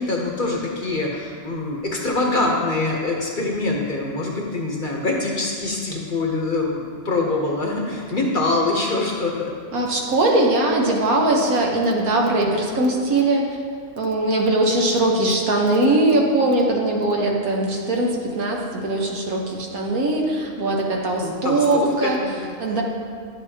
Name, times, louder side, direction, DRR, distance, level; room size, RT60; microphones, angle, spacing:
voice 1, 0.0-9.5 21.2-22.8, left 2 dB, 45° left, -1 dB, 0.8 m, -24 dB
voice 2, 9.7-13.6 14.0-22.2 22.6-22.8, right 2 dB, 80° right, 0 dB, 1.5 m, -20 dB
10.5 x 7.5 x 2.8 m, 2.1 s
omnidirectional pair, 1.5 m